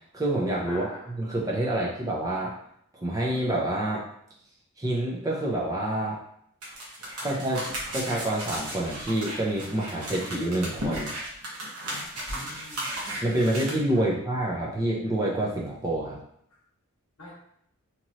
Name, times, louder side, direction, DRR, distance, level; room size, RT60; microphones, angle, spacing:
voice 1, 0.1-2.6 3.0-4.0 4.8-6.2 7.2-7.6 7.9-11.1 13.2-16.2, right 1 dB, 15° right, -4 dB, 0.5 m, -27 dB
voice 2, 0.7-1.1 7.1-7.3 12.3-13.0 13.9-14.1 17.2-17.3, left 2 dB, 75° left, -3 dB, 1.0 m, -43 dB
sound 1, 6.6-13.7, right 1 dB, 85° right, 1.0 m, -35 dB
2.9 x 2.9 x 2.6 m, 0.69 s
head